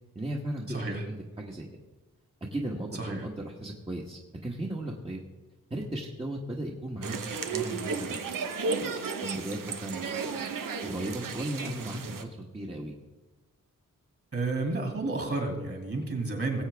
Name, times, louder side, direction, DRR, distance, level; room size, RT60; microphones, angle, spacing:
voice 1, 0.1-1.7 2.5-5.2 5.7-8.2 8.8-8.9 9.2-10.4 10.8-12.9, right 1 dB, 20° right, -1 dB, 1.3 m, -36 dB
voice 2, 0.7-1.0 2.9-3.2 14.3-16.6, right 3 dB, 45° right, 2 dB, 2.8 m, -31 dB
sound 1, 7.0-12.2, right 4 dB, 80° right, 1.0 m, -34 dB
19.0 x 8.1 x 3.5 m, 1.1 s
wide cardioid pair, 95°, 32 cm